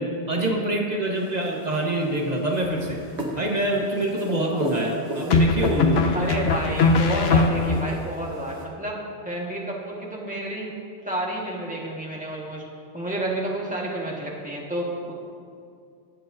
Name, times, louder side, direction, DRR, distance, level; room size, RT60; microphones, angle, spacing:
voice 1, 0.0-3.0 3.3-6.2, right 1 dB, 40° right, -1 dB, 1.3 m, -25 dB
sound 1, 1.1-8.6, right 1 dB, 85° right, 1.5 m, -35 dB
sound 2, 2.6-3.2 5.3-8.0, left 3 dB, 75° left, 0.9 m, -21 dB
voice 2, 6.1-10.7 11.0-12.6 12.9-15.1, right 1 dB, 10° right, -4 dB, 1.6 m, -30 dB
19.0 x 7.5 x 2.7 m, 2.3 s
omnidirectional pair, 1.1 m